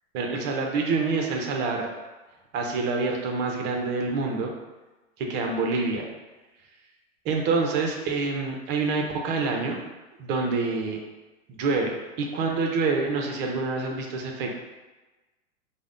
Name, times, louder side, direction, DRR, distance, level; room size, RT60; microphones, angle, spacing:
voice 1, 0.1-1.9 2.5-4.5 5.2-6.1 7.2-9.8 10.2-11.0 11.5-14.5, right 3 dB, 30° right, 2 dB, 0.5 m, -27 dB
4.9 x 2.1 x 2.5 m, 1.2 s
hypercardioid pair, 110°, 39 cm